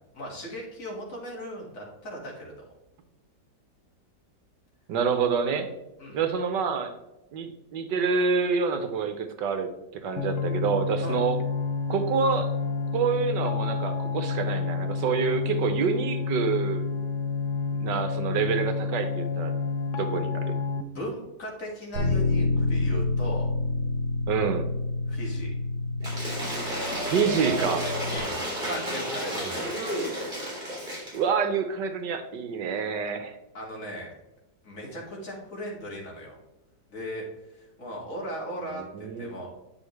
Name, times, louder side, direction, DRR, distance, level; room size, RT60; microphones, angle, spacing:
voice 1, 0.1-2.5 6.0-6.2 11.0-11.2 20.9-23.5 25.1-25.5 28.1-28.4 28.6-29.7 33.5-34.1 34.6-36.4 36.9-39.5, equal, 45° left, -2 dB, 2.5 m, -37 dB
voice 2, 4.9-5.7 6.1-6.9 7.3-11.4 11.9-12.5 12.9-16.8 17.7-19.5 20.0-20.5 24.3-24.7 27.0-27.8 31.1-33.3 38.9-39.3, right 6 dB, 75° right, 7 dB, 1.4 m, -27 dB
sound 1, 10.2-20.8, left 5 dB, 75° left, 0.7 m, -29 dB
Bass guitar, 21.9-28.2, left 3 dB, 45° right, 1.9 m, -28 dB
Cheering / Applause / Crowd, 26.0-31.2, equal, 25° right, 3.1 m, -31 dB
8.7 x 5.8 x 3.2 m, 1.0 s
omnidirectional pair, 2.0 m